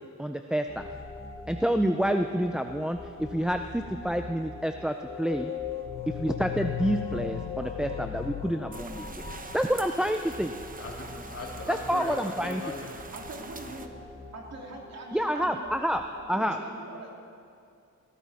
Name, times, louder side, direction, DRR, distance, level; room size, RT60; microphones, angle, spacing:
voice 1, 0.2-0.9 1.5-5.5 6.2-9.2 9.5-10.5 11.7-12.6 15.1-16.0 16.3-16.6, equal, 5° right, 6 dB, 0.4 m, -28 dB
sound 1, 0.7-16.2, left 2 dB, 20° left, 1.1 m, -45 dB
sound 2, 5.0-9.6, left 11 dB, 80° left, 0.6 m, -36 dB
sound 3, 8.7-13.9, right 4 dB, 25° right, 0.9 m, -44 dB
voice 2, 10.7-12.9, left 3 dB, 50° left, -1 dB, 2.6 m, -38 dB
voice 3, 13.1-13.9 14.3-15.8 16.1-17.1, right 2 dB, 60° right, -1 dB, 2.7 m, -42 dB
20.5 x 13.5 x 4.1 m, 2.4 s
cardioid pair, 105°, 30 cm